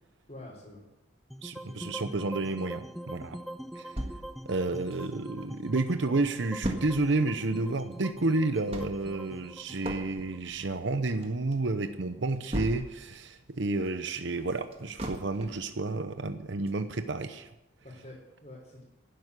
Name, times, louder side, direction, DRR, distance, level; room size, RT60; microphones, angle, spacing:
voice 1, 0.3-0.8 1.6-1.9 17.8-18.8, left 1 dB, 35° left, -6 dB, 3.6 m, -47 dB
sound 1, 1.3-11.5, equal, ahead, 0.4 m, -44 dB
voice 2, 1.4-3.4 3.8-3.9 4.5-17.5, right 2 dB, 65° right, 9 dB, 0.8 m, -30 dB
sound 2, 4.0-5.5 5.9-6.0 6.2-13.2 13.6-15.7 16.2-16.3 16.7-16.8, right 1 dB, 30° right, 1.6 m, -38 dB
12.0 x 9.7 x 8.2 m, 0.91 s
head